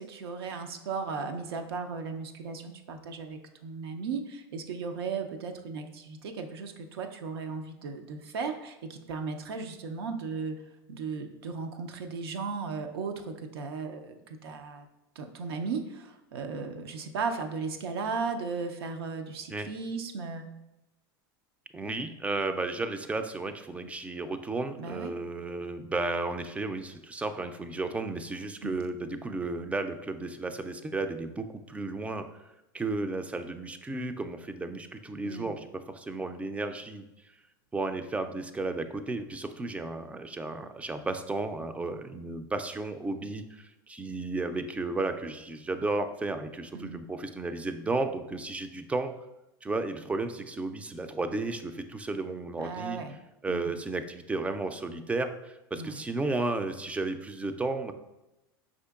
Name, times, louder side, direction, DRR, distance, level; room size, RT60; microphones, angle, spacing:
voice 1, 0.0-10.5 10.9-14.9 15.2-20.5 24.8-25.2 28.6-28.8 35.2-35.5 46.7-47.0 52.6-53.2 53.5-53.8 55.7-56.0, right 5 dB, 85° right, 5 dB, 0.5 m, -36 dB
voice 2, 21.7-32.4 32.7-37.0 37.7-49.1 49.6-53.0 53.4-57.9, right 3 dB, 10° right, 9 dB, 0.3 m, -33 dB
5.0 x 3.7 x 2.3 m, 0.95 s
hypercardioid pair, 110°, 13 cm